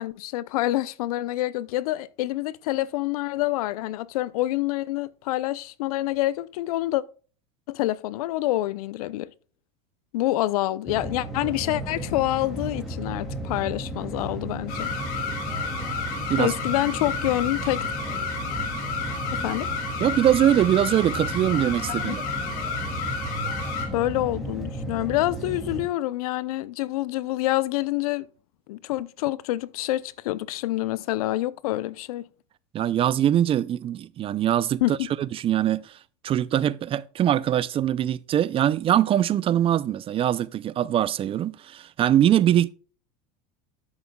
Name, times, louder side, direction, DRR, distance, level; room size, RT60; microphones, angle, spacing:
voice 1, 0.0-7.0 7.7-9.3 10.1-14.9 16.4-17.9 19.3-19.7 21.9-22.2 23.9-28.3 28.7-32.2 34.8-35.1, left 16 dB, 75° left, 0.6 m, -27 dB
sound 1, 10.9-25.9, right 1 dB, ahead, 2.4 m, -34 dB
sound 2, 14.7-23.9, left 5 dB, 50° left, 3.0 m, -31 dB
voice 2, 20.0-22.2 32.7-34.8 35.2-35.9 36.2-42.7, right 11 dB, 30° right, 0.4 m, -22 dB
10.5 x 8.0 x 2.2 m
supercardioid pair, 110°, 19 cm